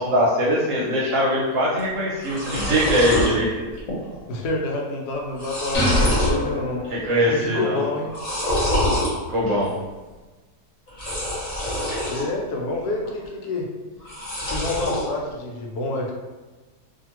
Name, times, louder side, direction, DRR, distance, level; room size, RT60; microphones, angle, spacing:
voice 1, 0.0-3.5 6.9-7.8 9.3-9.7, equal, 65° right, -4 dB, 0.9 m, -21 dB
sound 1, 1.8-1.9 2.1-3.3 3.8-4.2 4.4-4.5 5.1-6.4 6.8-7.3 8.0-9.1 10.9-12.2 12.7-13.3 14.0-15.0, left 1 dB, 35° left, 0.6 m, -25 dB
voice 2, 4.3-6.8 7.3-8.1 12.0-13.7 14.4-16.1, left 2 dB, 80° left, 0 dB, 1.1 m, -28 dB
sound 2, 5.7-7.4, left 1 dB, 60° left, 0.9 m, -26 dB
2.7 x 2.4 x 2.9 m, 1.2 s
omnidirectional pair, 1.7 m